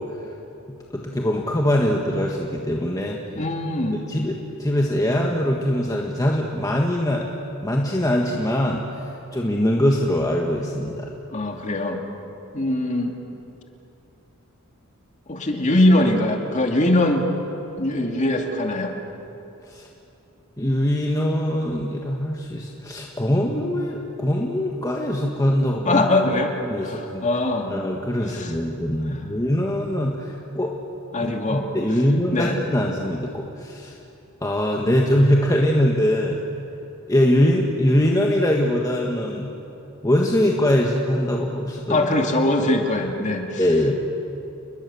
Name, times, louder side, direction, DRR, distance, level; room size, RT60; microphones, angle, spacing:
voice 1, 0.9-3.2 4.1-7.3 7.6-8.8 9.3-11.1 19.7-19.9 20.6-26.0 26.7-27.2 27.7-30.7 31.2-33.9 34.4-36.4 37.1-39.5 40.0-42.1 43.6-44.0, left 1 dB, 15° left, -1 dB, 1.5 m, -22 dB
voice 2, 3.4-4.0 11.3-12.0 12.5-13.2 15.3-17.2 17.8-18.9 25.8-27.7 28.2-28.5 29.1-29.2 31.1-31.7 32.3-32.6 41.9-43.6, left 1 dB, 35° left, 2 dB, 2.4 m, -22 dB
30.0 x 21.0 x 7.0 m, 2.9 s
head